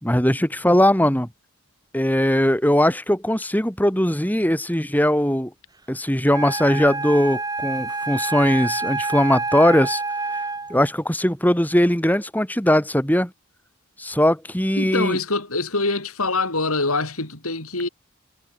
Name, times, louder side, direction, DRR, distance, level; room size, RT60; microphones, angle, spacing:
voice 1, 0.0-1.3 1.9-5.5 5.9-10.0 10.7-13.3 14.0-15.2, equal, 10° left, 3.3 m, -20 dB
Wind instrument woodwind instrument, 6.3-10.9, right 3 dB, 15° right, 7.1 m, -27 dB
voice 2, 14.8-17.9, left 3 dB, 85° left, 7.2 m, -24 dB
head